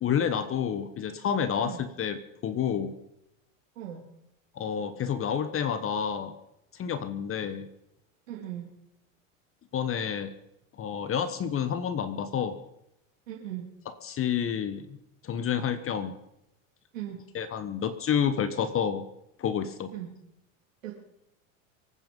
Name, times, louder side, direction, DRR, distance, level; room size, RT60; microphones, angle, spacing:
voice 1, 0.0-2.9 4.5-6.3 6.7-7.7 9.7-10.3 10.8-12.6 14.0-15.0 15.2-16.1 17.3-19.1 19.4-19.9, left 8 dB, 35° left, 12 dB, 1.2 m, -29 dB
voice 2, 8.3-8.7 13.3-13.7 16.9-17.2 19.9-20.1 20.8-20.9, right 11 dB, 90° right, -3 dB, 3.1 m, -38 dB
24.0 x 9.1 x 5.5 m, 0.83 s
supercardioid pair, 105°, 39 cm